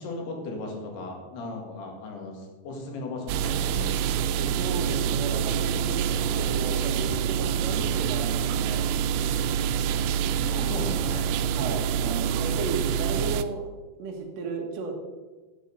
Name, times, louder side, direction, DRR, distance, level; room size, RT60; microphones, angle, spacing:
voice 1, 0.0-4.1 10.5-11.3, left 2 dB, 85° left, 1 dB, 4.0 m, -36 dB
sound 1, 3.3-13.4, right 8 dB, 85° right, 2.5 m, -26 dB
voice 2, 4.3-8.9 10.3-10.7 11.5-13.7 14.0-14.9, right 4 dB, 65° right, 2 dB, 1.7 m, -34 dB
10.5 x 7.1 x 6.6 m, 1.3 s
omnidirectional pair, 4.6 m